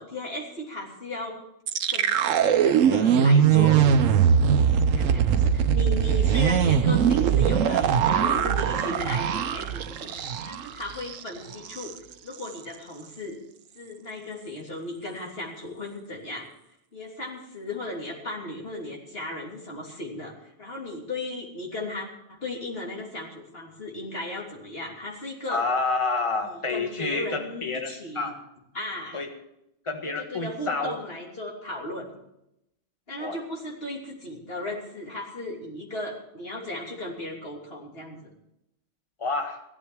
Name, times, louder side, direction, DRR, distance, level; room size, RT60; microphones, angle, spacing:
voice 1, 0.0-1.4 1.9-3.9 4.9-11.9 12.2-13.4 13.8-16.5 16.9-20.3 20.6-25.6 26.4-28.3 28.7-29.2 30.0-32.1 33.1-38.3, left 2 dB, 50° left, -2 dB, 3.4 m, -36 dB
sound 1, 1.7-10.7 11.0-11.2 11.5-11.9, right 8 dB, 85° right, 1.1 m, -21 dB
voice 2, 25.5-28.4 29.1-29.3 29.9-30.9 33.2-33.4 39.2-39.6, left 3 dB, 25° left, 3 dB, 1.6 m, -29 dB
16.0 x 12.5 x 4.7 m, 0.81 s
omnidirectional pair, 1.3 m